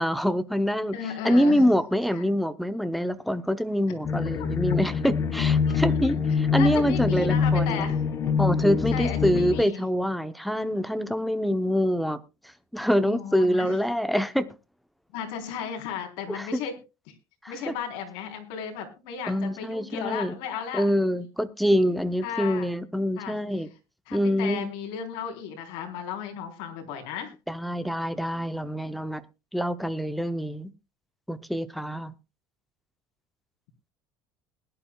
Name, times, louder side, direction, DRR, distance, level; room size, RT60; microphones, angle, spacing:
voice 1, 0.0-1.0 1.2-7.9 8.4-12.2 12.7-14.5 16.3-16.5 17.4-17.5 19.3-20.4 20.7-23.7 24.1-24.7 27.5-29.2 29.5-30.7 31.3-32.1, equal, ahead, 0.7 m, -25 dB
voice 2, 0.9-1.8 2.1-2.2 5.6-6.2 6.6-8.0 8.9-9.8 13.0-13.7 15.1-16.7 17.1-17.2 17.5-20.9 21.1-21.2 22.2-22.7 23.2-23.4 24.1-27.3, left 7 dB, 75° left, 3.7 m, -35 dB
sound 1, 4.0-9.6, left 6 dB, 30° left, 1.0 m, -25 dB
21.0 x 11.0 x 2.3 m
cardioid pair, 175°, 9 cm